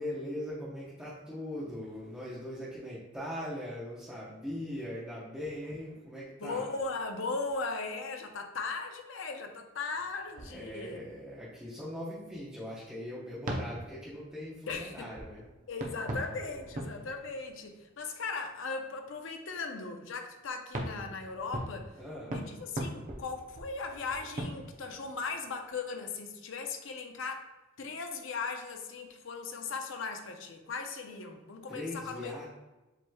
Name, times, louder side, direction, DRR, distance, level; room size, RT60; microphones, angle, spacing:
voice 1, 0.0-6.7 10.4-15.4 22.0-22.3 31.7-32.4, left 1 dB, 5° right, -8 dB, 0.8 m, -40 dB
voice 2, 6.4-11.0 14.7-15.1 15.7-21.9 22.3-27.5 27.8-32.4, left 4 dB, 70° left, 5 dB, 0.6 m, -38 dB
sound 1, 9.9-11.2 11.8-11.9 12.5-12.6 13.5-18.2 20.7-25.8, right 1 dB, 40° right, 0.7 m, -41 dB
7.5 x 3.1 x 2.3 m, 1.1 s
head